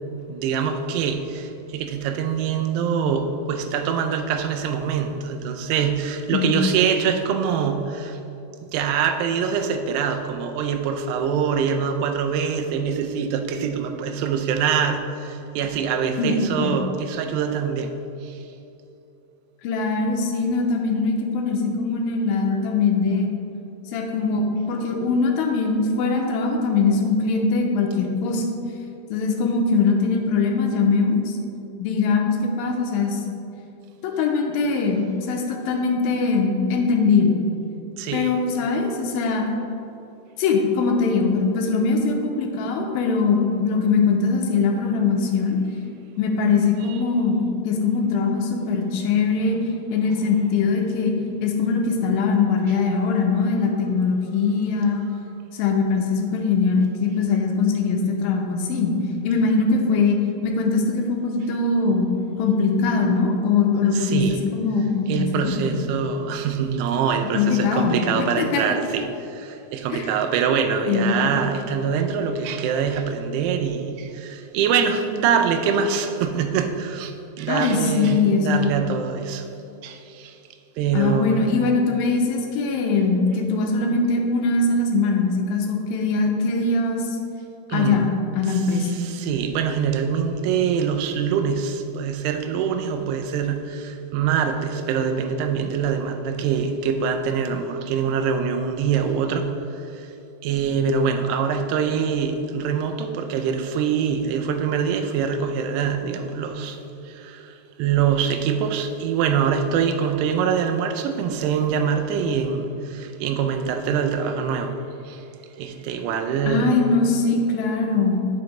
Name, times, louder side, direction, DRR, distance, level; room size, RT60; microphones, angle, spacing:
voice 1, 0.3-8.2 8.7-17.9 18.2-18.4 38.0-38.3 46.9-47.0 48.8-48.9 49.5-49.7 63.9-64.5 65.1-79.5 79.8-80.4 80.8-81.4 87.7-88.1 88.5-100.1 100.4-115.2 115.6-116.7, right 7 dB, 90° right, 6 dB, 2.7 m, -24 dB
voice 2, 16.2-16.8 19.6-23.3 23.9-28.5 29.1-31.4 31.8-33.2 34.0-37.4 38.1-39.5 40.4-45.6 46.2-47.4 47.7-49.6 49.9-51.1 51.4-55.0 55.5-59.0 59.2-62.1 62.4-64.2 64.5-65.8 67.3-68.8 69.9-70.1 70.9-71.3 77.5-78.8 80.9-87.1 87.7-88.9 116.5-118.2, left 4 dB, 80° left, 2 dB, 2.2 m, -21 dB
8.9 x 6.0 x 3.2 m, 2.8 s
omnidirectional pair, 4.6 m